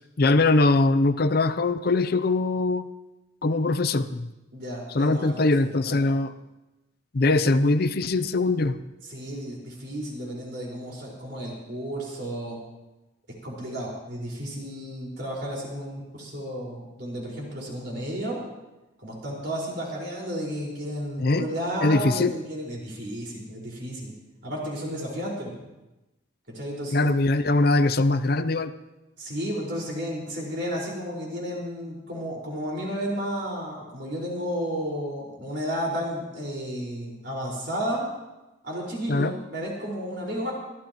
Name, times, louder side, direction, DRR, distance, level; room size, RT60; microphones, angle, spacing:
voice 1, 0.2-2.9 3.4-4.3 4.9-6.3 7.1-8.8 21.2-21.5 21.8-22.3 26.9-28.7 39.1-39.3, left 2 dB, 50° left, 12 dB, 0.6 m, -22 dB
voice 2, 4.5-5.4 5.9-6.0 9.1-12.6 13.4-18.4 19.0-24.1 24.4-25.7 26.5-27.1 29.2-38.0 38.6-40.5, equal, 60° right, -3 dB, 4.8 m, -32 dB
23.0 x 14.5 x 3.0 m, 1.0 s
head